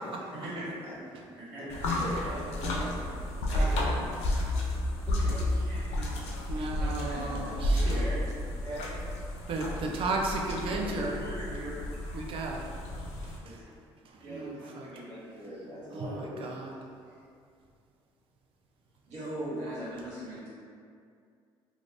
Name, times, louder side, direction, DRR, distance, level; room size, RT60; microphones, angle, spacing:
voice 1, 0.4-0.7 1.4-1.6 1.9-2.1 3.5-4.6 5.2-5.4 5.6-8.2 8.6-8.9 10.6-11.7 12.0-12.2 14.2-16.6 17.1-17.2 19.1-20.5, right 1 dB, 85° right, -10 dB, 1.4 m, -41 dB
voice 2, 1.6-3.3 5.0-5.3 7.0-7.5, equal, 20° right, -10 dB, 1.3 m, -41 dB
sound 1, 1.7-13.4, left 1 dB, 75° left, 0.5 m, -32 dB
voice 3, 3.5-4.4 5.9-6.1 6.5-8.1 9.5-11.2 12.1-12.8 13.2-13.6 14.0-14.9 15.9-16.8, right 2 dB, 55° right, 0 dB, 0.5 m, -35 dB
2.5 x 2.4 x 3.3 m, 2.3 s
cardioid pair, 95°, 11 cm